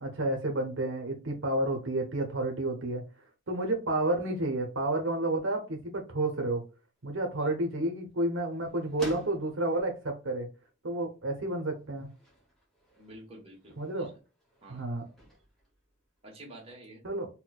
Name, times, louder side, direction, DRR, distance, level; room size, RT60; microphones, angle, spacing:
voice 1, 0.0-3.0 3.5-6.6 7.0-10.5 10.8-12.1 13.8-14.1 14.7-15.1 17.0-17.3, right 2 dB, 70° right, 3 dB, 0.7 m, -30 dB
sound 1, 7.0-16.7, equal, ahead, 0.9 m, -52 dB
voice 2, 13.0-14.2 14.6-14.9 16.2-17.0, right 1 dB, 30° right, -3 dB, 1.1 m, -50 dB
4.2 x 2.1 x 2.3 m, 0.31 s
head